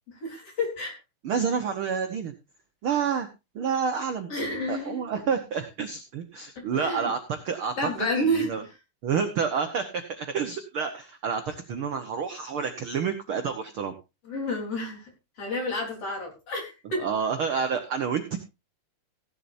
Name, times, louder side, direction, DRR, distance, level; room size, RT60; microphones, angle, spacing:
voice 1, 0.2-0.9 4.3-5.0 6.6-7.1 7.8-8.7 14.2-15.1 15.4-17.0, equal, 40° left, 1 dB, 4.8 m, -30 dB
voice 2, 1.2-2.3 2.8-3.3 3.5-4.3 4.7-8.1 8.5-8.6 9.0-13.9 16.9-18.4, right 6 dB, 65° right, 6 dB, 1.3 m, -29 dB
16.5 x 11.5 x 2.7 m, 0.26 s
omnidirectional pair, 4.1 m